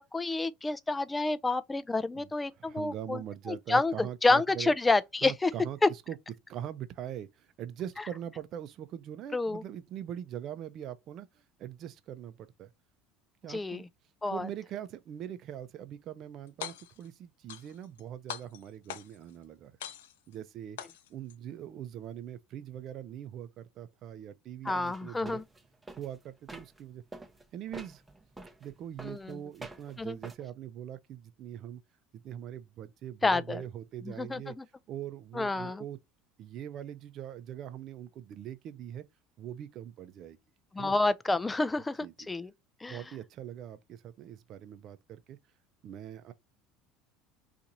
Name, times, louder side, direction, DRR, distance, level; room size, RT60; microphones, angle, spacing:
voice 1, 0.0-3.2 3.5-5.5 5.8-5.9 9.3-9.6 13.5-13.9 14.2-14.5 24.6-25.4 29.0-29.4 30.0-30.2 33.2-33.6 34.1-34.6 35.3-35.8 40.7-42.5 42.8-43.0, left 3 dB, 15° left, 0.4 m, -29 dB
voice 2, 2.1-4.7 5.2-6.2 6.5-12.7 13.4-13.8 14.3-19.7 20.3-20.8 21.1-25.4 26.0-27.0 27.5-28.0 28.6-31.8 32.1-34.6 34.9-36.0 36.4-39.0 39.4-40.4 40.8-41.0 42.0-42.3 42.9-45.4 45.8-46.3, right 10 dB, 55° right, 0.6 m, -42 dB
sound 1, 16.5-17.1 17.5-18.0 18.3-19.3 19.8-20.3 20.8-21.3, left 11 dB, 80° left, 0.4 m, -42 dB
sound 2, 24.7-26.8 27.1-30.4, right 2 dB, 15° right, 0.8 m, -47 dB
2.8 x 2.5 x 3.9 m
hypercardioid pair, 80°, 0 cm